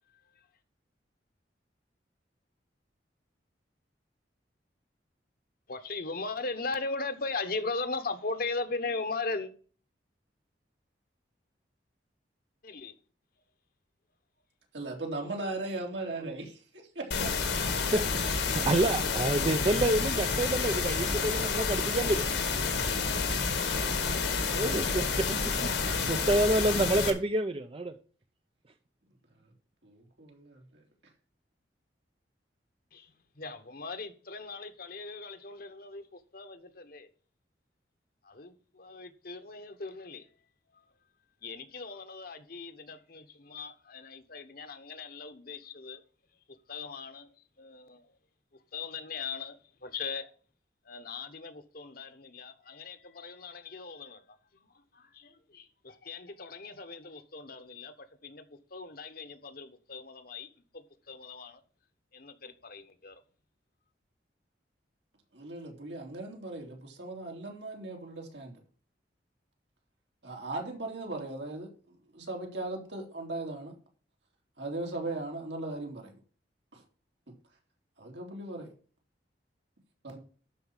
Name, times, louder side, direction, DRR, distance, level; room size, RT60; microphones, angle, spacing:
voice 1, 5.7-9.5 12.6-12.9 15.0-15.3 32.9-37.1 38.2-40.3 40.7-40.8 41.4-46.0 46.5-48.1 48.7-50.3 50.8-54.2 54.5-54.7 54.9-61.6 62.1-63.2, left 3 dB, 55° left, 1.2 m, -39 dB
voice 2, 14.7-17.3 29.8-30.8 65.3-68.5 70.2-71.7 72.1-73.7 74.6-76.2 76.7-76.8 78.0-78.7 80.0-80.2, right 2 dB, 80° right, 2.9 m, -38 dB
sound 1, 17.1-27.1, left 5 dB, 80° left, 2.0 m, -29 dB
voice 3, 18.7-22.2 24.5-27.9, right 1 dB, 30° right, 0.6 m, -28 dB
11.5 x 4.6 x 7.2 m
head